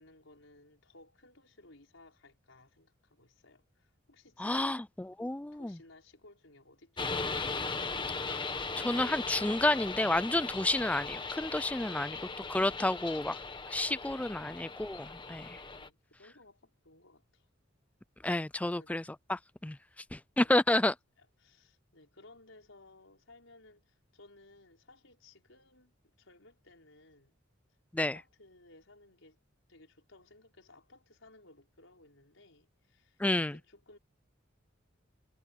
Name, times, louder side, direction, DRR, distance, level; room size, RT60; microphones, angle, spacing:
voice 1, 0.0-4.8 5.5-7.6 15.7-17.5 18.6-19.0 20.4-20.6 21.2-27.4 28.0-29.4 29.7-33.2 33.5-34.0, left 2 dB, 90° left, 5.0 m, -59 dB
voice 2, 4.4-4.8 5.2-5.7 8.3-8.4 8.8-12.2 12.5-13.4 13.7-15.6 18.2-19.0 19.3-19.8 20.1-20.9 27.9-28.2 33.2-33.6, left 1 dB, 5° left, 0.3 m, -30 dB
sound 1, 7.0-15.9, left 4 dB, 25° left, 1.4 m, -38 dB
head